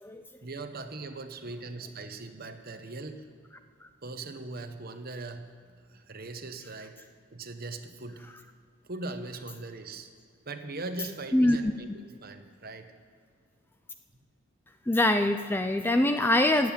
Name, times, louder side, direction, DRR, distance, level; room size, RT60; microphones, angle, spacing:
voice 1, 0.4-3.2 4.0-7.0 7.3-8.2 8.8-10.1 10.5-12.9, right 3 dB, 45° right, 8 dB, 1.1 m, -40 dB
voice 2, 14.9-16.7, left 1 dB, 10° left, 8 dB, 0.4 m, -23 dB
15.5 x 8.0 x 9.1 m, 2.1 s
head